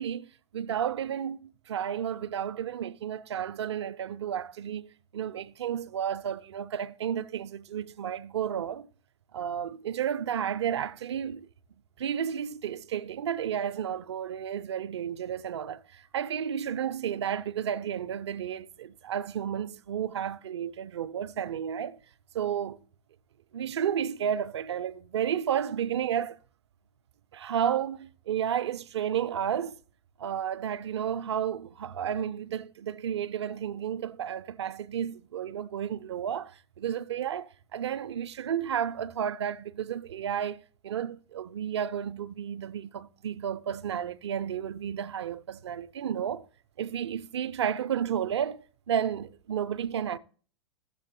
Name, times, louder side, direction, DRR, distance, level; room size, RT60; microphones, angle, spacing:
voice 1, 0.0-8.9 9.3-11.5 12.0-22.0 22.3-22.8 23.5-26.4 27.3-29.7 30.2-46.5 46.8-50.2, right 9 dB, 65° right, 0.4 m, -32 dB
14.0 x 7.5 x 2.7 m
figure-of-eight pair, 100°, 15 cm